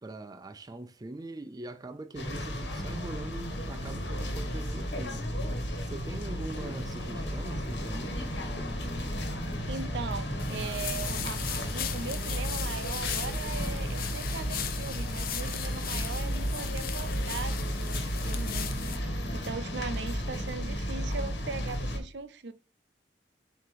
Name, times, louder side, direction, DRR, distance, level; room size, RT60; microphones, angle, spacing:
voice 1, 0.0-5.3 5.8-8.2 18.5-18.6, right 2 dB, 20° right, 0.4 m, -42 dB
sound 1, 2.1-22.0, equal, 80° left, 1.5 m, -33 dB
voice 2, 9.7-22.5, right 4 dB, 75° right, 0.6 m, -39 dB
sound 2, 10.4-19.0, left 9 dB, 55° left, 0.7 m, -38 dB
7.4 x 2.8 x 5.0 m
head